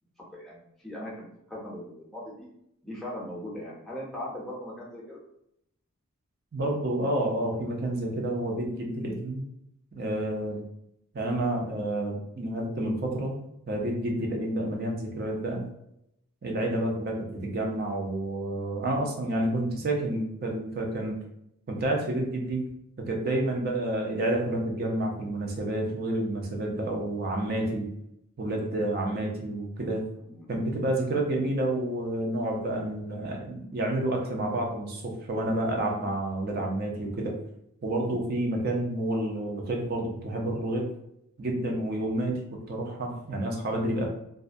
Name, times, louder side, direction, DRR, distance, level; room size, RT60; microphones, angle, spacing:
voice 1, 0.3-2.5 2.8-5.2 11.6-11.8 30.2-30.4, left 1 dB, ahead, -6 dB, 0.6 m, -39 dB
voice 2, 6.5-9.5 9.9-10.6 11.1-13.4 13.7-15.6 16.4-21.2 21.7-22.7 23.0-27.9 28.4-30.0 30.5-37.3 37.8-40.9 41.4-44.1, right 1 dB, 45° right, 0 dB, 0.5 m, -29 dB
2.3 x 2.1 x 2.5 m, 0.78 s
head